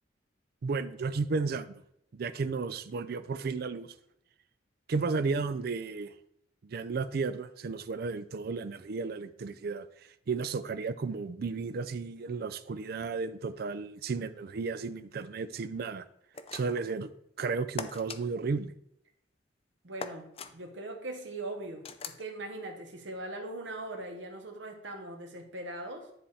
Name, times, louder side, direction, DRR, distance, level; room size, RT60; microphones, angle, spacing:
voice 1, 0.6-1.8 2.1-3.9 4.9-6.1 6.6-16.1 16.5-17.1 17.4-18.7, right 4 dB, 55° right, 0.4 m, -33 dB
sound 1, 16.3-16.9 17.8-18.2 20.0-20.5 21.8-22.2, left 5 dB, 30° left, 0.4 m, -40 dB
voice 2, 19.8-26.1, right 2 dB, 75° right, 1.2 m, -40 dB
10.0 x 3.4 x 4.2 m
head